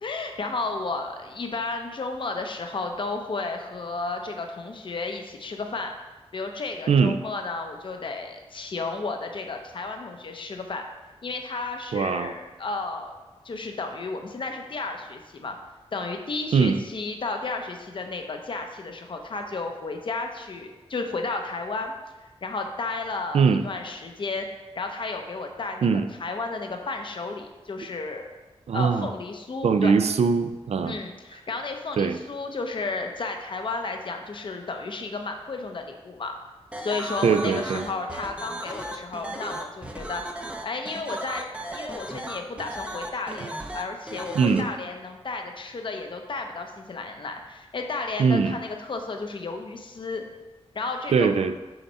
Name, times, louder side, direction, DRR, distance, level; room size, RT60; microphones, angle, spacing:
voice 1, 0.0-5.9 6.3-10.8 11.2-13.1 13.4-15.6 15.9-21.9 22.2-24.5 24.8-25.9 26.2-28.3 28.7-30.0 30.8-36.3 36.8-40.2 40.6-50.2 50.7-51.4, left 3 dB, 50° left, 4 dB, 0.7 m, -33 dB
voice 2, 6.9-7.2 11.9-12.3 16.5-16.8 23.3-23.6 25.8-26.1 28.7-29.1 29.6-31.0 32.0-32.2 37.2-37.8 44.3-44.7 48.2-48.6 51.1-51.6, right 5 dB, 75° right, 9 dB, 0.4 m, -21 dB
sound 1, 36.7-44.6, right 1 dB, 10° right, 0.5 m, -36 dB
5.7 x 4.1 x 5.5 m, 1.2 s
wide cardioid pair, 135°, 11 cm